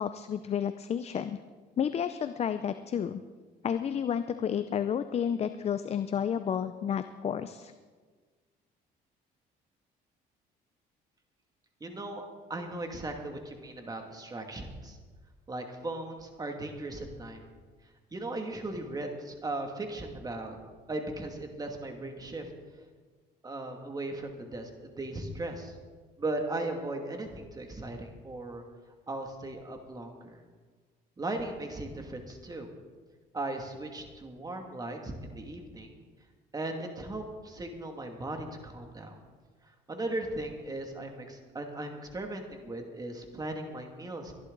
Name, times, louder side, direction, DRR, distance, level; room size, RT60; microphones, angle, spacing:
voice 1, 0.0-1.4 1.8-3.2 3.6-7.7, left 8 dB, 40° left, 11 dB, 0.6 m, -31 dB
voice 2, 11.8-12.2 12.5-15.0 15.5-17.4 18.1-20.6 20.9-22.5 23.4-25.7 26.2-28.6 29.1-30.4 31.2-32.7 33.3-36.0 36.5-39.2 39.9-44.3, right 2 dB, 20° right, 3 dB, 2.4 m, -37 dB
23.5 x 11.5 x 4.0 m, 1.5 s
cardioid pair, 110°, 17 cm